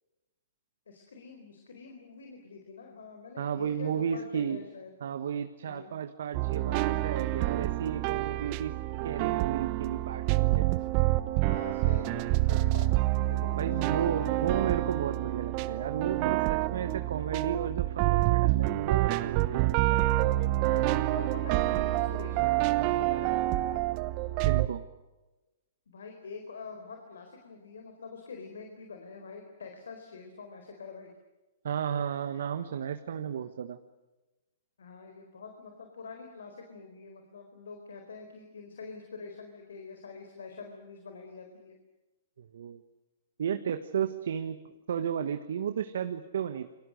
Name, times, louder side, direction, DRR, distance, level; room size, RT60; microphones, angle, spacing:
voice 1, 0.9-4.9 5.7-5.9 11.4-14.4 16.4-16.7 18.5-18.7 19.5-19.6 20.5-23.8 25.9-31.1 34.8-41.8, left 4 dB, 75° left, 4 dB, 4.4 m, -45 dB
voice 2, 3.4-4.6 5.0-8.7 9.0-10.8 13.5-20.0 24.4-24.8 31.6-33.8 42.4-42.8 43.4-44.6 44.9-46.7, right 8 dB, 70° right, 9 dB, 1.4 m, -33 dB
sound 1, 6.3-24.7, right 17 dB, 40° right, 1.1 m, -27 dB
29.5 x 24.0 x 6.5 m, 1.1 s
hypercardioid pair, 120°, 0 cm